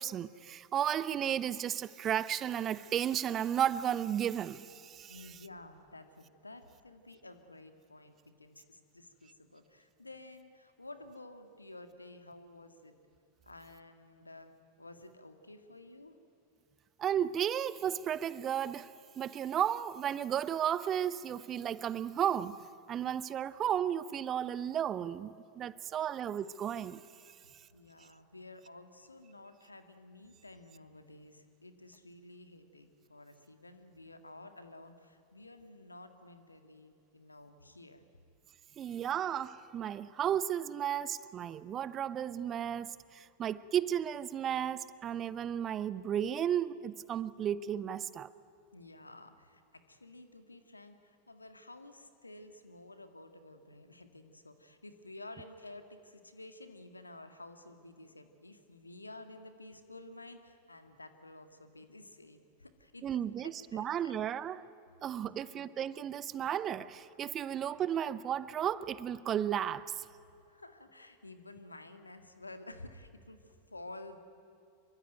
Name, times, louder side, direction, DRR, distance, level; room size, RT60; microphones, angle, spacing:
voice 1, 0.0-5.2 17.0-22.6 22.9-27.3 38.8-48.3 63.0-64.7 65.0-70.1, right 9 dB, 30° right, 0.8 m, -34 dB
voice 2, 5.1-12.9 13.4-14.5 14.8-16.2 27.7-38.1 48.7-64.1 65.2-65.5 70.4-74.2, left 2 dB, 80° left, 2.0 m, -52 dB
26.5 x 23.5 x 9.3 m
figure-of-eight pair, 90°, 0 cm